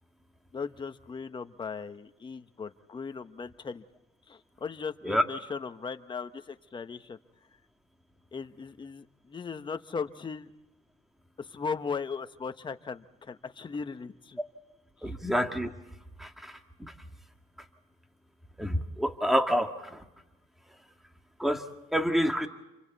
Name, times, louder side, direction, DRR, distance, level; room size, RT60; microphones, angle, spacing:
voice 1, 0.5-3.8 4.3-7.2 8.3-10.5 11.4-14.4 15.0-15.1, left 5 dB, 30° left, 9 dB, 1.2 m, -38 dB
voice 2, 15.0-15.7 16.2-16.9 18.6-20.1 21.4-21.6 21.9-22.5, equal, ahead, 5 dB, 2.0 m, -28 dB
29.0 x 24.5 x 4.1 m, 1.0 s
cardioid pair, 110°, 17 cm